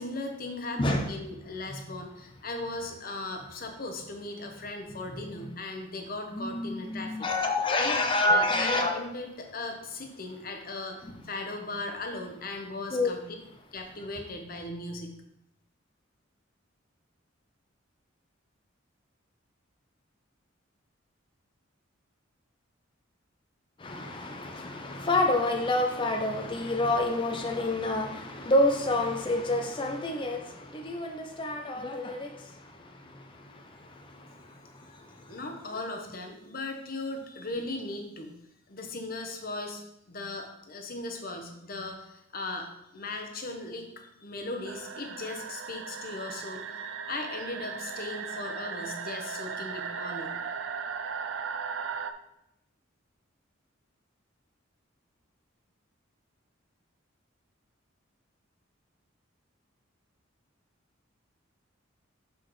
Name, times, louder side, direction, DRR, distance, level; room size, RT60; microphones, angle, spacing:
voice 1, 0.0-7.1 7.7-8.0 8.2-13.2 13.7-15.1 35.3-38.3 38.7-50.4, left 2 dB, 45° left, 1.0 m, -38 dB
voice 2, 6.3-8.9 11.1-11.2 12.9-13.1 23.8-32.3, left 2 dB, 25° left, 0.5 m, -27 dB
sound 1, 44.7-52.1, right 6 dB, 65° right, 0.4 m, -37 dB
6.7 x 5.9 x 3.2 m
head